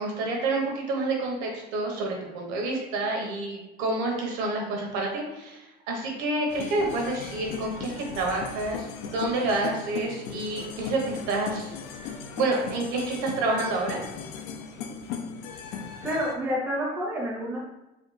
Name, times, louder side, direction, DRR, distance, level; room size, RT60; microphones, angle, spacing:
voice 1, 0.0-11.7 12.4-14.0, right 2 dB, 70° right, 0 dB, 0.9 m, -28 dB
sound 1, 6.5-16.3, left 6 dB, 75° left, 0.4 m, -38 dB
voice 2, 15.7-17.6, equal, 10° right, -3 dB, 0.5 m, -29 dB
4.2 x 2.3 x 3.1 m, 0.96 s
cardioid pair, 170°, 20 cm